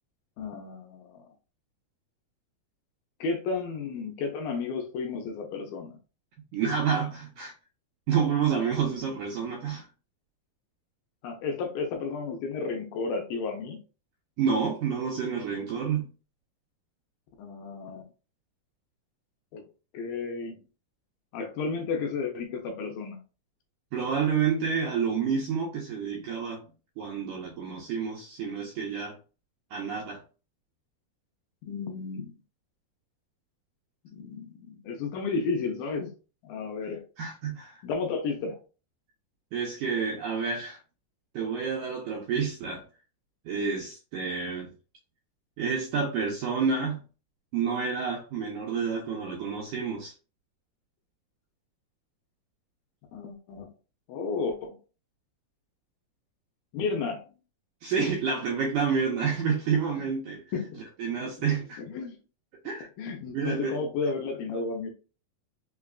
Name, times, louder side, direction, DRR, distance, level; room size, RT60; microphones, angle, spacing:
voice 1, 0.4-1.2 3.2-6.0 8.8-9.1 11.2-13.8 17.4-18.1 19.5-19.6 19.9-20.6 21.3-23.2 31.6-32.3 34.1-36.1 36.4-37.0 37.8-38.6 53.1-53.7 54.1-54.8 56.7-57.3 60.0-60.1 60.5-60.8 61.2-61.5 61.8-62.2 63.0-64.9, left 4 dB, 80° left, 2.3 m, -33 dB
voice 2, 6.5-7.5 8.1-9.9 14.4-16.1 23.9-26.6 27.0-29.2 29.7-30.2 37.2-37.8 39.5-40.8 41.3-42.8 43.5-44.7 45.6-47.0 47.5-50.1 57.8-60.4 61.0-61.8 62.6-62.9 63.3-63.8, right 6 dB, 80° right, 1.8 m, -29 dB
5.7 x 2.3 x 2.3 m
omnidirectional pair, 4.3 m